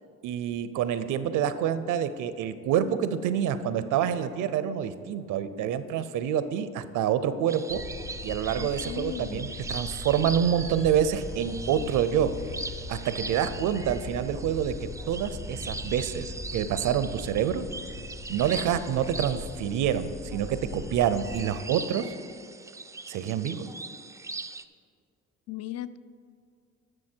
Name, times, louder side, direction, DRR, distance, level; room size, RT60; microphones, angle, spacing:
voice 1, 0.2-7.8 8.2-12.3 12.9-17.6 18.3-22.1 23.1-23.7, right 9 dB, 85° right, 13 dB, 0.6 m, -27 dB
sound 1, 7.5-24.6, right 3 dB, 10° right, 0.3 m, -41 dB
sound 2, 7.7-21.5, left 3 dB, 75° left, 2.5 m, -40 dB
voice 2, 8.6-9.6 25.5-26.0, left 12 dB, 55° left, 16 dB, 0.4 m, -37 dB
12.5 x 6.4 x 4.4 m, 2.2 s
cardioid pair, 90°, 30 cm